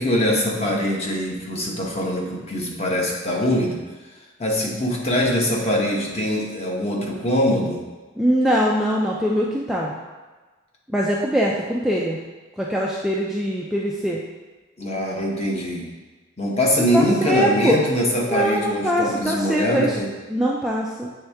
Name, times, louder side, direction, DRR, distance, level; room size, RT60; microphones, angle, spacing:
voice 1, 0.0-3.8 4.4-7.8 14.8-15.9 16.4-20.1, equal, 30° left, -2 dB, 0.9 m, -23 dB
voice 2, 8.2-9.9 10.9-12.2 12.6-14.2 16.9-17.8 18.3-20.0 20.3-21.1, equal, ahead, -4 dB, 0.3 m, -22 dB
7.9 x 3.5 x 3.4 m, 1.3 s
head